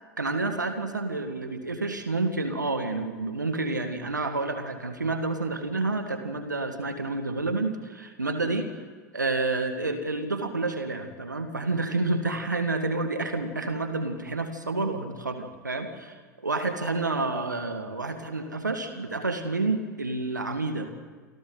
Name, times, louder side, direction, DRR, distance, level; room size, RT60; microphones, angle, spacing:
voice 1, 0.2-8.7 9.1-20.9, right 3 dB, 90° right, 7 dB, 1.9 m, -29 dB
28.0 x 25.5 x 4.0 m, 1.4 s
figure-of-eight pair, 90°, 10 cm